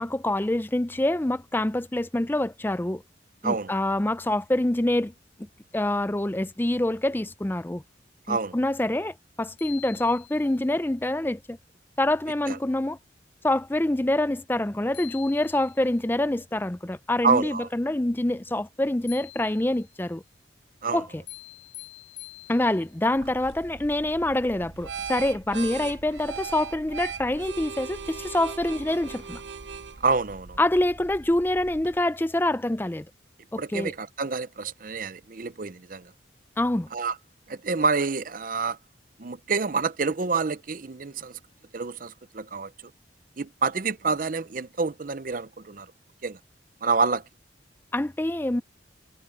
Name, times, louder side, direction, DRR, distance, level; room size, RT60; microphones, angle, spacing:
voice 1, 0.0-3.0 3.4-5.1 5.4-5.5 5.7-7.8 8.3-11.6 12.0-13.0 13.4-20.2 20.9-21.2 22.5-29.4 30.6-33.1 33.5-33.9 36.6-36.9 47.9-48.6, left 1 dB, 10° left, 0.4 m, -26 dB
sound 1, 9.6-10.7 14.6-14.7 14.9-16.0 19.1-20.0 21.3-23.0, left 18 dB, 55° left, 3.2 m, -45 dB
voice 2, 17.2-17.7 20.8-21.0 30.0-30.6 33.6-36.1 36.9-37.1 37.5-38.8 39.2-41.3 41.7-42.7 43.4-45.9 46.2-46.4 46.8-47.2, right 4 dB, 45° right, 0.6 m, -27 dB
sound 2, 23.2-32.0, right 6 dB, 70° right, 1.0 m, -39 dB
head